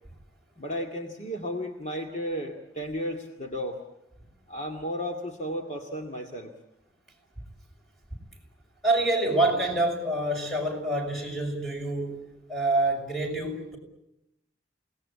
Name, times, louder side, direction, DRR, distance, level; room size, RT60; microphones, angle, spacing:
voice 1, 0.6-3.8 4.5-6.5, equal, 40° left, 2 dB, 2.1 m, -33 dB
voice 2, 8.8-12.2 12.5-13.8, right 2 dB, ahead, 0 dB, 6.3 m, -26 dB
29.0 x 19.0 x 8.6 m, 0.84 s
head